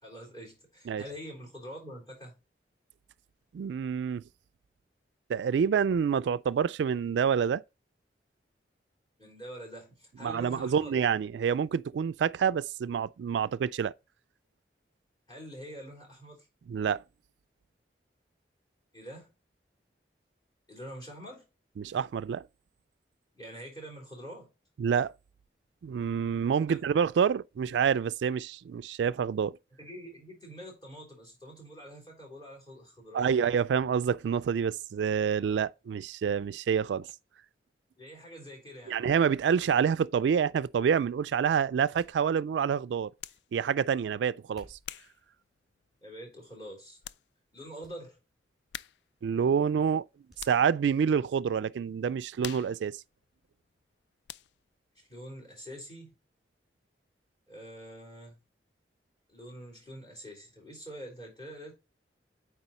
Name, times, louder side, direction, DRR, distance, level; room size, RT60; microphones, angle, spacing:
voice 1, 0.0-2.3 9.2-11.0 15.3-16.5 18.9-19.3 20.7-21.5 23.3-24.5 26.7-26.8 29.8-33.4 38.0-39.0 46.0-47.0 47.5-48.2 55.1-56.1 57.5-58.4 59.3-61.7, equal, 25° left, 3.5 m, -45 dB
voice 2, 3.5-4.2 5.3-7.6 10.2-13.9 16.7-17.0 21.8-22.5 24.8-25.1 25.8-29.6 33.1-37.1 38.9-43.1 43.5-44.8 49.2-50.0 50.5-53.0, right 7 dB, 80° right, 0.3 m, -27 dB
sound 1, 41.9-42.8 44.4-45.1 45.9-46.2 46.7-46.8 47.8-48.0 48.3-48.4 50.3-50.5 50.8-50.9, right 1 dB, ahead, 3.0 m, -58 dB
sound 2, 43.2-43.5 44.1-46.1 46.6-46.7 47.0-47.3 47.6-47.7 48.7-49.2 49.5-50.8 51.3-51.5 51.8-54.0 54.3-54.7, left 12 dB, 75° left, 0.3 m, -46 dB
8.9 x 3.7 x 4.1 m
head